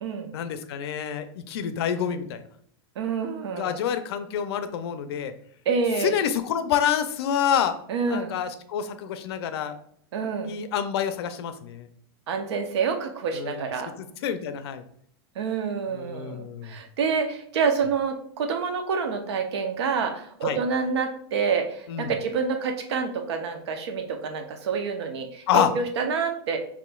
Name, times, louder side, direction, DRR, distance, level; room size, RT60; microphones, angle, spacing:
voice 1, 0.3-2.4 3.5-5.3 6.0-7.7 8.1-9.8 10.4-11.9 13.3-13.7 14.0-14.8 15.9-16.7 20.4-20.6 21.9-22.1 25.5-25.7, left 8 dB, 75° left, 10 dB, 0.5 m, -27 dB
voice 2, 3.0-3.8 5.7-6.1 7.9-8.3 10.1-10.5 12.3-13.9 15.4-26.6, right 5 dB, 85° right, 5 dB, 0.8 m, -27 dB
5.0 x 3.1 x 2.3 m, 0.65 s
supercardioid pair, 150°, 14 cm